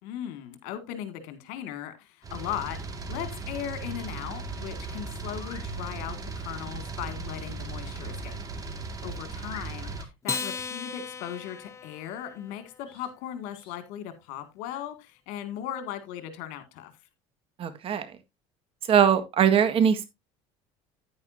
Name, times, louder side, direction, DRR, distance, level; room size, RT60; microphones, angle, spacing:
voice 1, 0.0-2.8 3.1-8.4 9.0-16.9, left 10 dB, 75° left, 2.2 m, -38 dB
sound 1, 2.2-10.0, right 3 dB, 25° right, 2.1 m, -37 dB
sound 2, 5.3-5.7 8.2-8.4 8.9-9.0 9.5-10.1 12.8-13.1 13.5-13.8, left 6 dB, 40° left, 4.1 m, -49 dB
Acoustic guitar, 10.2-12.9, left 5 dB, 20° left, 0.7 m, -36 dB
voice 2, 17.6-18.1 18.9-20.0, right 8 dB, 45° right, 1.7 m, -21 dB
9.8 x 9.7 x 2.7 m
supercardioid pair, 110°, 14 cm